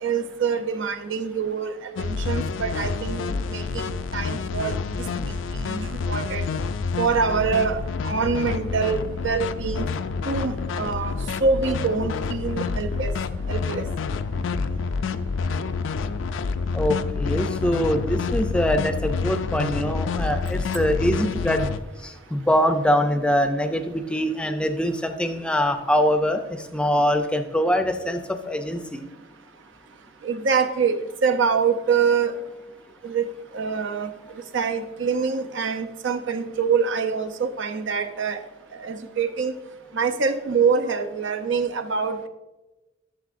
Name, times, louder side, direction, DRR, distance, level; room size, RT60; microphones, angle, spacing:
voice 1, 0.0-4.7 5.5-6.5 7.0-9.9 10.2-11.1 11.4-13.1 13.5-13.9 30.2-32.3 33.0-33.3 33.5-34.1 34.5-38.4 38.8-39.5 39.9-42.3, right 5 dB, 75° right, 7 dB, 0.6 m, -25 dB
sound 1, 2.0-21.8, left 4 dB, 80° left, 0.4 m, -28 dB
voice 2, 16.7-21.7 22.0-29.0, equal, 5° left, 7 dB, 0.4 m, -23 dB
11.5 x 6.8 x 2.5 m, 1.1 s
head